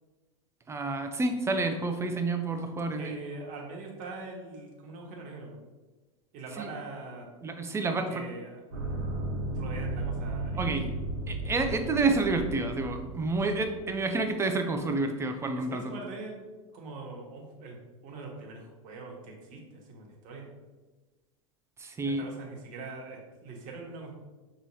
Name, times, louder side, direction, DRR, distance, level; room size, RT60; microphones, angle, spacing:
voice 1, 0.7-3.2 6.6-6.7 7.4-8.3 10.6-10.9 11.3-15.9 21.8-22.2, right 3 dB, 15° right, 6 dB, 0.5 m, -29 dB
voice 2, 3.0-5.6 6.3-7.3 7.9-8.7 9.2-11.0 15.6-16.4 16.7-17.8 18.0-20.5 22.0-24.1, right 3 dB, 50° right, 0 dB, 1.3 m, -42 dB
sound 1, 8.7-14.2, right 2 dB, 70° right, 1.3 m, -35 dB
6.0 x 3.1 x 2.7 m, 1.2 s
hypercardioid pair, 100°, 17 cm